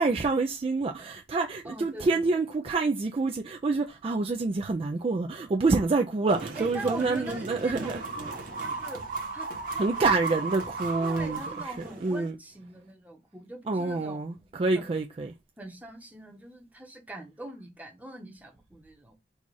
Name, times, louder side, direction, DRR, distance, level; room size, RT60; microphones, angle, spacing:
voice 1, 0.0-8.0 9.8-11.7 12.0-12.3 13.7-15.3, right 3 dB, 30° right, 0.3 m, -27 dB
voice 2, 1.6-2.4 6.5-9.0 9.3-10.5 11.0-14.2 14.7-14.9 15.6-19.1, right 2 dB, 10° right, 0.9 m, -43 dB
sound 1, 6.3-12.3, right 3 dB, 50° right, 1.1 m, -36 dB
4.1 x 2.4 x 4.5 m
head